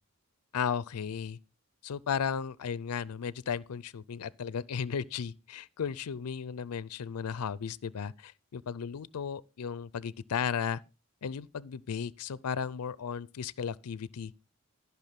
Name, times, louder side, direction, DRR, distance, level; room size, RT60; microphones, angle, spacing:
voice 1, 0.5-1.4 1.8-10.8 11.2-14.3, left 7 dB, 90° left, 0.5 m, -35 dB
14.0 x 5.9 x 5.8 m
head